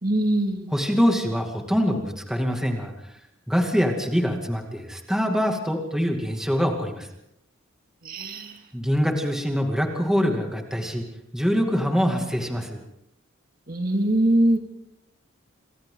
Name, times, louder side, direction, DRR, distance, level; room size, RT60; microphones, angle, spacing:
voice 1, 0.0-0.7 8.0-8.6 13.7-14.6, right 1 dB, 45° right, 4 dB, 2.4 m, -22 dB
voice 2, 0.7-2.9 3.5-7.1 8.7-11.0 11.3-12.8, equal, 5° right, 2 dB, 2.4 m, -24 dB
27.5 x 25.0 x 3.9 m, 0.82 s
head